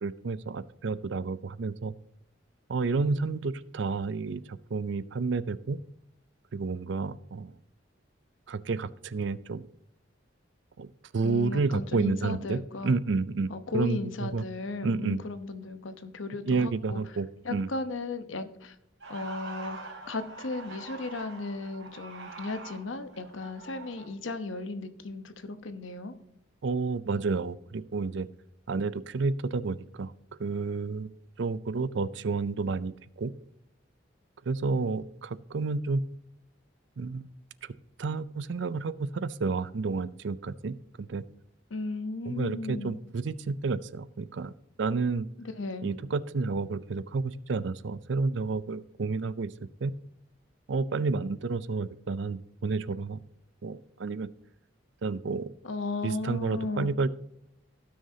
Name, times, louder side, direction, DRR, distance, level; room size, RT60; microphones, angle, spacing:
voice 1, 0.0-1.9 2.7-5.8 6.5-7.6 8.5-9.6 10.8-10.9 11.1-14.4 14.8-15.2 16.5-17.7 26.6-28.3 28.7-30.1 30.4-31.1 31.4-33.3 34.5-36.0 37.0-37.3 38.0-41.2 42.3-44.5 44.8-45.3 45.8-49.5 49.8-49.9 50.7-53.2 53.6-54.3 55.0-55.5 56.0-57.1, right 4 dB, 65° right, 17 dB, 0.5 m, -30 dB
voice 2, 11.2-13.0 13.5-17.0 17.4-18.7 19.1-19.8 20.1-26.1 41.7-43.0 45.4-45.9 55.6-57.0, left 3 dB, 80° left, 10 dB, 0.9 m, -36 dB
sound 1, 19.0-24.1, right 3 dB, 85° right, 3.2 m, -44 dB
16.5 x 6.4 x 2.8 m, 0.78 s
head